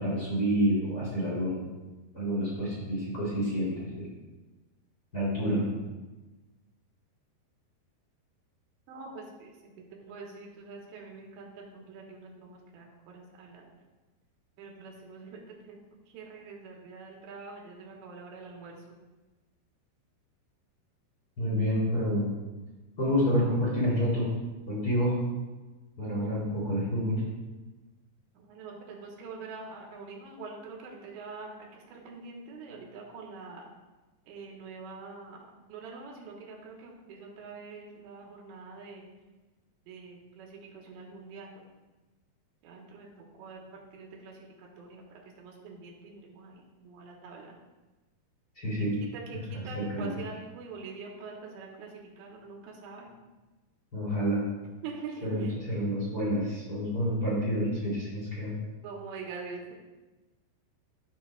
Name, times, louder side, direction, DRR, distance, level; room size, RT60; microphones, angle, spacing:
voice 1, 0.0-1.7 2.1-4.1 5.1-5.7 21.4-22.3 23.0-24.3 24.7-25.2 26.0-27.2 48.6-49.0 49.3-50.2 53.9-54.4 55.2-58.5, equal, 25° left, -8 dB, 2.8 m, -28 dB
voice 2, 8.9-9.7 10.0-12.9 13.1-13.7 14.6-15.4 15.7-15.8 16.1-18.8 26.2-26.4 28.4-33.7 34.3-35.4 35.7-39.0 39.9-41.6 42.6-43.1 43.4-43.6 43.9-45.0 45.4-47.6 48.8-51.9 52.2-53.1 54.8-55.5 58.8-59.7, right 4 dB, 80° right, -1 dB, 3.4 m, -44 dB
14.5 x 6.1 x 2.3 m, 1.2 s
omnidirectional pair, 5.0 m